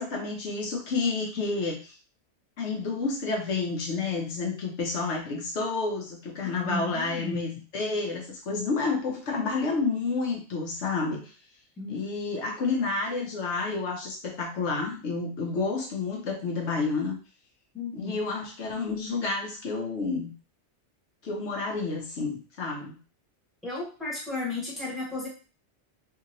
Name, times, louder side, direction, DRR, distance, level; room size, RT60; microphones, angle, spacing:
voice 1, 0.0-1.9 2.6-11.3 11.9-17.2 17.9-20.3 21.2-22.9, left 4 dB, 70° left, 0 dB, 1.0 m, -30 dB
voice 2, 6.4-7.4 11.8-12.0 17.7-18.2 23.6-25.3, left 3 dB, ahead, -4 dB, 1.0 m, -34 dB
2.8 x 2.8 x 2.6 m, 0.36 s
omnidirectional pair, 1.2 m